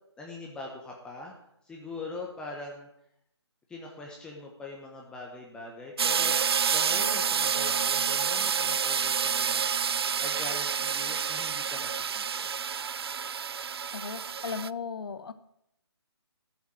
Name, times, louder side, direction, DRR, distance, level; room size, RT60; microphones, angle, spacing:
voice 1, 0.2-1.3 1.6-2.9 3.7-6.4 6.7-9.7 10.2-12.5, left 3 dB, 5° left, -1 dB, 1.1 m, -42 dB
sound 1, 6.0-14.7, right 7 dB, 60° right, 0.4 m, -28 dB
voice 2, 13.9-15.3, left 5 dB, 60° left, 11 dB, 1.2 m, -36 dB
14.0 x 7.2 x 7.7 m, 0.78 s
figure-of-eight pair, 155°, 15 cm